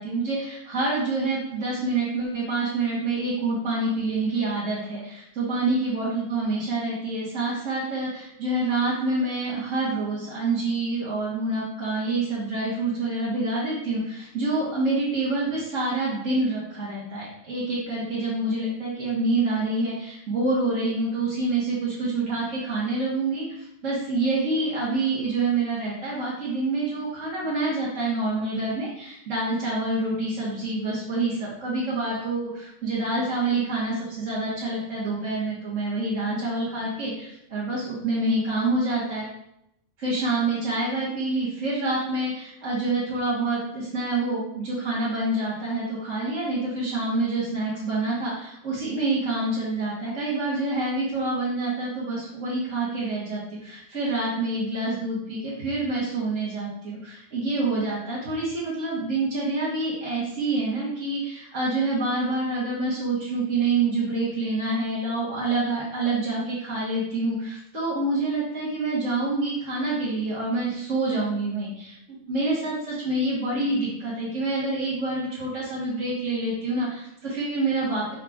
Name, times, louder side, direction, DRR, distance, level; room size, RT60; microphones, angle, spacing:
voice 1, 0.0-39.3 40.0-78.1, right 2 dB, 60° right, -8 dB, 1.8 m, -27 dB
5.6 x 4.8 x 3.5 m, 0.80 s
omnidirectional pair, 1.5 m